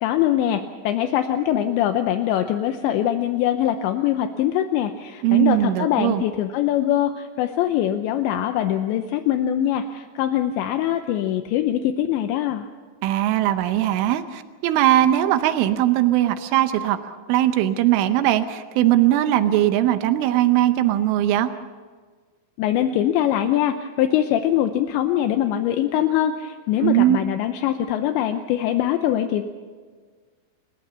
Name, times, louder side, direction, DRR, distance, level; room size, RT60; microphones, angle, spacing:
voice 1, 0.0-12.6 22.6-29.5, left 11 dB, 80° left, 7 dB, 2.9 m, -23 dB
voice 2, 5.2-6.2 13.0-21.5 26.8-27.2, right 13 dB, 85° right, 10 dB, 3.4 m, -20 dB
29.0 x 14.5 x 7.0 m, 1.5 s
omnidirectional pair, 5.5 m